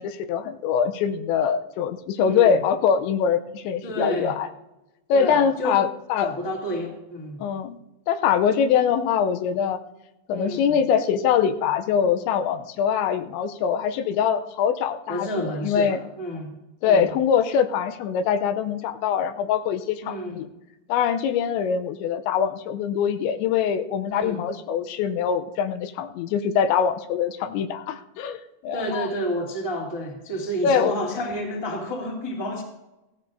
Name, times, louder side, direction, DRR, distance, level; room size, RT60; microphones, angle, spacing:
voice 1, 0.0-4.5 5.1-6.3 7.4-7.8 8.1-9.8 10.3-15.3 15.6-16.0 16.8-20.5 20.9-29.1 30.6-30.9, left 7 dB, 85° left, 8 dB, 3.0 m, -23 dB
voice 2, 2.1-2.6 3.8-4.3 5.1-5.8 6.2-7.4 10.3-10.8 15.1-16.5 16.8-17.0 20.0-20.4 24.1-24.4 28.7-32.6, equal, 10° left, -3 dB, 1.2 m, -30 dB
17.0 x 14.0 x 2.7 m, 0.95 s
omnidirectional pair, 5.3 m